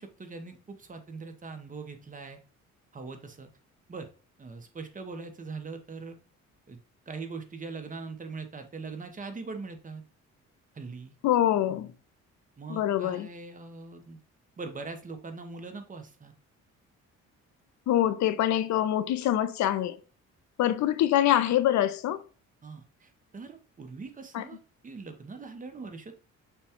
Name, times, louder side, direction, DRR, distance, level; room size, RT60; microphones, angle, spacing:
voice 1, 0.0-2.4 2.9-3.5 3.9-4.1 4.4-6.2 6.7-6.8 7.1-10.0 10.7-11.1 12.6-14.2 14.6-16.3 22.6-24.6 24.8-26.1, right 4 dB, 25° right, 0.8 m, -41 dB
voice 2, 11.2-11.9 12.7-13.3 17.9-20.0 20.6-22.2 24.3-24.4, left 12 dB, 65° left, 0.5 m, -25 dB
6.7 x 2.3 x 2.9 m
cardioid pair, 90°, 30 cm